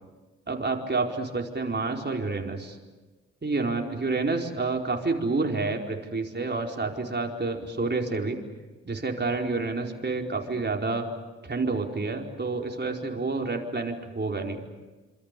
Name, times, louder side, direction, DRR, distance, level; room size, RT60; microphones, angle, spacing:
voice 1, 0.5-2.8 3.4-8.4 8.8-11.1 11.4-14.6, right 3 dB, 30° right, 1 dB, 4.8 m, -29 dB
27.5 x 27.0 x 6.9 m, 1.2 s
hypercardioid pair, 40°, 35 cm